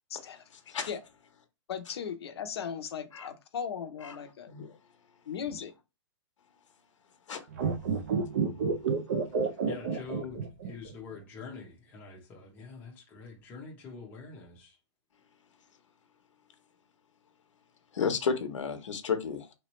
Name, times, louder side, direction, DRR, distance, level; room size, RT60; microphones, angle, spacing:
voice 1, 0.1-0.4 0.9-1.0 1.7-4.8 5.3-5.7, left 7 dB, 55° left, 0.7 m, -37 dB
sound 1, 7.5-10.9 11.2-11.3, right 5 dB, 35° right, 0.5 m, -29 dB
voice 2, 9.7-10.4 10.6-14.8, left 5 dB, 10° left, 0.7 m, -45 dB
voice 3, 17.9-19.5, left 6 dB, 85° left, 0.9 m, -32 dB
3.4 x 3.1 x 3.0 m
hypercardioid pair, 175°, 16 cm